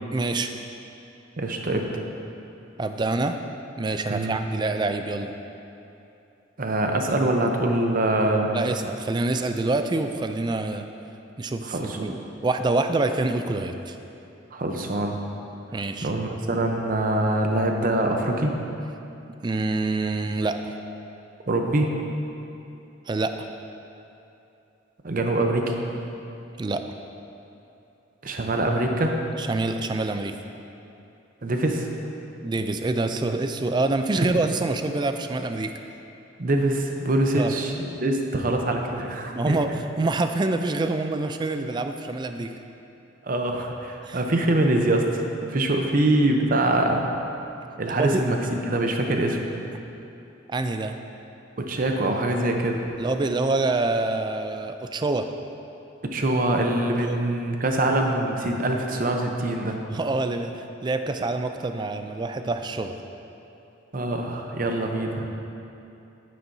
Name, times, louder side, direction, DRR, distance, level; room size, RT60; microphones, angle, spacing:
voice 1, 0.1-0.5 2.8-3.4 3.8-5.3 8.5-10.9 11.4-12.1 12.4-14.0 15.7-16.1 19.4-20.7 23.1-23.4 26.6-26.8 29.4-30.4 32.4-35.7 37.4-37.5 39.3-39.7 40.0-42.5 44.1-44.2 48.0-48.1 50.5-51.0 53.0-55.3 57.0-57.2 59.9-63.0, right 2 dB, 20° right, 7 dB, 0.3 m, -26 dB
voice 2, 1.4-1.9 4.1-4.4 6.6-8.5 11.6-12.0 14.5-15.2 16.0-18.5 21.5-21.9 25.0-25.8 28.2-29.2 31.4-31.9 36.4-39.6 43.2-47.1 47.8-49.4 51.6-52.9 56.1-59.8 63.9-65.4, right 1 dB, 45° right, 3 dB, 0.7 m, -24 dB
9.8 x 9.1 x 2.7 m, 2.9 s
head